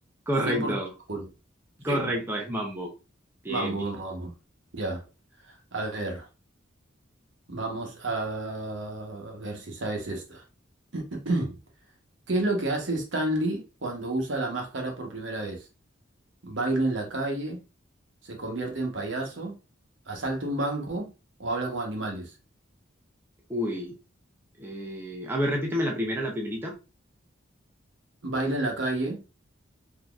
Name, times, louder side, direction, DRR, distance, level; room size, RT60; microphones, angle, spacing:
voice 1, 0.3-0.9 1.8-2.9 3.4-3.8 23.5-23.9 24.6-26.7, equal, 10° right, 0.6 m, -29 dB
voice 2, 3.5-4.3 4.7-5.0 5.5-6.3 7.5-10.4 10.9-11.6 12.3-15.6 16.4-17.6 18.2-19.5 20.1-21.1 21.4-22.3 28.2-29.2, right 2 dB, 65° right, 0.9 m, -30 dB
3.7 x 2.8 x 2.3 m
head